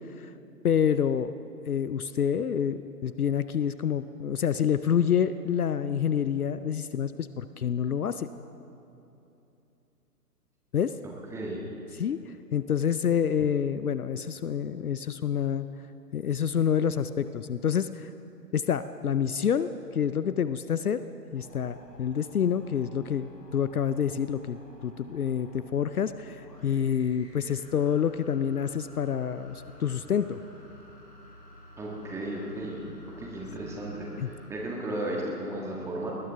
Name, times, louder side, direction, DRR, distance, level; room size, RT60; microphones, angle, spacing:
voice 1, 0.6-1.3 1.7-8.3 10.7-10.9 12.0-15.7 16.1-18.1 18.5-21.0 21.3-30.4 34.2-34.3, left 8 dB, 60° left, 13 dB, 0.6 m, -27 dB
voice 2, 11.3-11.6 31.8-32.8 33.2-36.2, right 1 dB, 5° right, -3 dB, 1.6 m, -34 dB
sound 1, 21.3-34.5, left 1 dB, 80° left, 4.6 m, -51 dB
21.0 x 19.5 x 3.5 m, 2.9 s
figure-of-eight pair, 130°, 49 cm